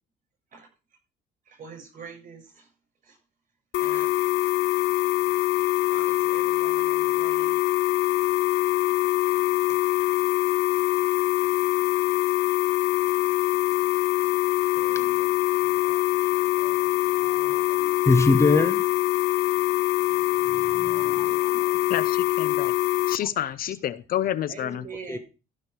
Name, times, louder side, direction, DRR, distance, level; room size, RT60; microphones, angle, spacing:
voice 1, 1.5-2.7 3.0-3.2 3.8-4.1 5.9-7.6 8.7-8.8 24.5-25.2, right 5 dB, 50° right, 7.0 m, -43 dB
sound 1, 3.7-23.2, left 15 dB, 85° left, 0.5 m, -24 dB
voice 2, 14.8-15.3 16.6-16.8 17.2-18.8 20.5-21.7 25.1-25.2, left 3 dB, 15° left, 1.1 m, -25 dB
voice 3, 21.9-22.7 23.1-24.8, left 11 dB, 60° left, 0.8 m, -29 dB
15.0 x 5.9 x 4.7 m
cardioid pair, 110°, 17 cm